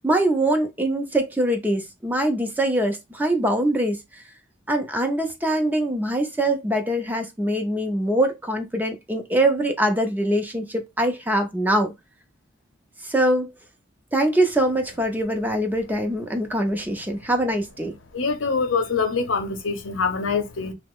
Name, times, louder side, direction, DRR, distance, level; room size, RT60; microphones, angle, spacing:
voice 1, 0.0-4.2 4.7-11.9 13.0-13.5 14.1-17.9, right 1 dB, 10° right, 0.5 m, -23 dB
voice 2, 18.1-20.7, left 4 dB, 85° left, 0.7 m, -24 dB
3.3 x 2.0 x 3.5 m
head